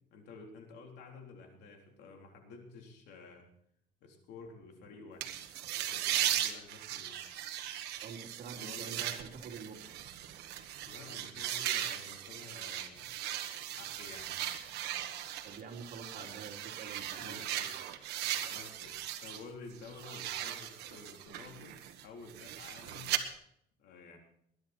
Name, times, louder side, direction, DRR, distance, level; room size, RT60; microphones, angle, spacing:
voice 1, 0.1-3.5 4.0-5.3 5.7-7.4 8.5-9.2 10.9-13.1 13.7-14.3 16.1-16.3 17.2-17.8 18.2-23.2 23.8-24.2, left 4 dB, 80° left, 2 dB, 3.7 m, -51 dB
sound 1, 5.2-19.4 19.7-23.2, right 12 dB, 80° right, 1.5 m, -38 dB
voice 2, 8.0-10.0 15.4-17.4, right 5 dB, 60° right, 1 dB, 3.1 m, -47 dB
20.5 x 11.0 x 4.4 m, 0.68 s
cardioid pair, 110°, 17 cm